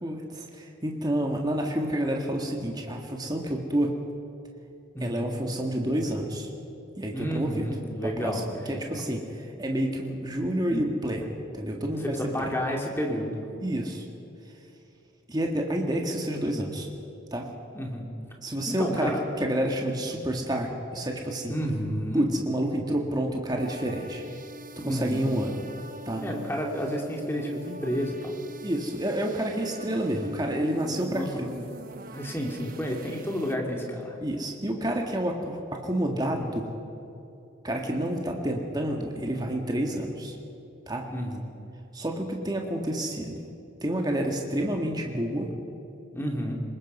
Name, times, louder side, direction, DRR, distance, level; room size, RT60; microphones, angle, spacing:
voice 1, 0.0-4.0 5.0-6.5 7.0-7.7 8.0-12.5 13.6-14.0 15.3-16.9 17.3-17.5 18.4-21.6 22.1-24.2 24.8-25.6 26.1-26.2 28.6-31.5 34.2-36.7 37.6-40.4 40.9-41.0 41.9-43.5 43.8-45.5, right 1 dB, 20° right, 1 dB, 1.8 m, -29 dB
voice 2, 4.9-5.3 7.1-8.8 12.0-13.4 17.7-18.1 18.8-19.2 21.5-22.2 24.8-25.3 26.2-28.3 31.1-31.5 32.1-34.2 41.1-41.5 46.1-46.6, equal, 10° left, 0 dB, 2.6 m, -31 dB
sound 1, 23.6-33.5, right 1 dB, 45° right, 1.1 m, -43 dB
24.5 x 21.0 x 5.5 m, 2.7 s
head